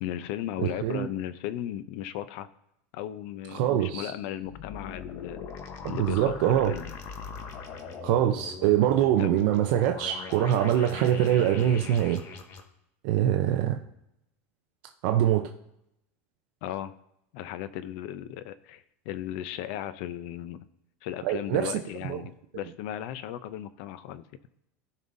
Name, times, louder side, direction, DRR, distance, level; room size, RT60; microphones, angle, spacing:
voice 1, 0.0-2.5 2.9-5.5 5.9-7.0 9.2-9.4 16.6-17.0 17.3-20.6 21.0-24.2, left 11 dB, 55° left, 14 dB, 0.6 m, -36 dB
voice 2, 0.6-1.1 3.5-4.1 5.8-6.7 8.0-12.2 13.0-13.8 15.0-15.5 21.2-21.7 22.1-22.2, right 11 dB, 55° right, 4 dB, 0.6 m, -24 dB
sound 1, 4.4-12.6, left 6 dB, 40° left, 1.0 m, -41 dB
16.0 x 5.4 x 2.6 m, 0.82 s
supercardioid pair, 160°, 7 cm